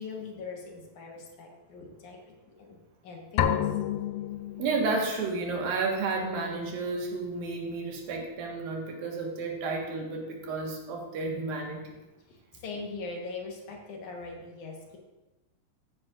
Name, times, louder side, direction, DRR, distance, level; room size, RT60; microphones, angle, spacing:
voice 1, 0.0-4.0 12.3-15.0, left 4 dB, 65° left, 0 dB, 2.5 m, -41 dB
sound 1, 3.4-5.2, left 9 dB, 85° left, 2.4 m, -29 dB
voice 2, 4.5-11.8, right 3 dB, 80° right, 0 dB, 3.2 m, -31 dB
15.0 x 9.5 x 2.5 m, 1.1 s
omnidirectional pair, 4.1 m